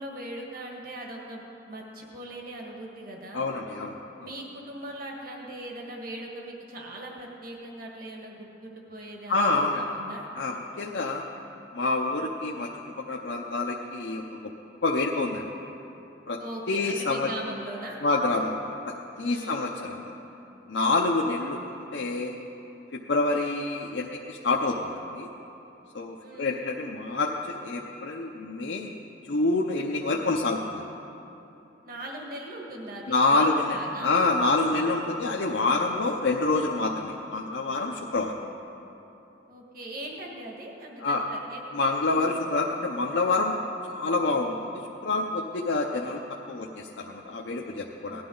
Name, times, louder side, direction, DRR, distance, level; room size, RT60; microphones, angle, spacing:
voice 1, 0.0-3.6 4.2-10.3 16.4-18.0 19.2-19.8 26.2-26.7 31.8-34.1 39.5-42.3 48.1-48.3, right 1 dB, 55° right, -1 dB, 1.6 m, -40 dB
voice 2, 3.3-3.9 4.2-4.3 9.3-9.9 10.3-11.2 11.7-12.7 13.1-14.5 14.8-15.5 16.3-16.4 16.7-17.3 18.0-20.1 20.7-22.3 22.9-25.3 25.9-28.9 29.3-30.8 33.1-38.4 41.0-41.2 41.7-43.6 43.8-44.7 45.0-46.2 46.5-48.2, left 3 dB, 75° left, -1 dB, 0.7 m, -27 dB
18.5 x 11.5 x 3.9 m, 3.0 s
head